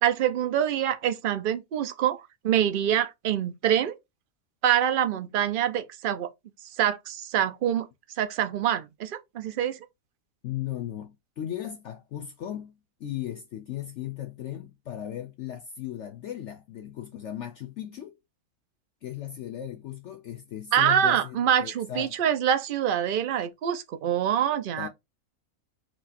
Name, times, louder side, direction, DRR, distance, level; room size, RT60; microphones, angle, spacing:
voice 1, 0.0-4.0 4.6-6.3 6.8-7.9 8.2-9.8 20.7-24.9, right 10 dB, 55° right, 0.6 m, -25 dB
voice 2, 10.4-18.2 19.0-22.1 24.8-24.9, left 11 dB, 65° left, 0.8 m, -37 dB
4.4 x 2.3 x 4.2 m
omnidirectional pair, 1.5 m